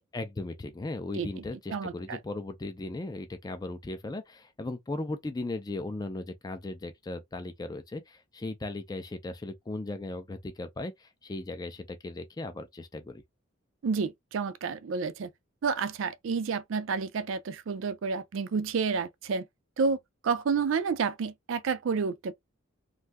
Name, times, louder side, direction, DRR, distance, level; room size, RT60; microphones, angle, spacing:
voice 1, 0.1-13.2, left 2 dB, 20° left, 0.4 m, -37 dB
voice 2, 1.7-2.2 13.8-15.3 15.6-19.4 19.8-20.0 20.2-22.3, right 5 dB, 65° right, 0.4 m, -30 dB
2.6 x 2.3 x 3.3 m
head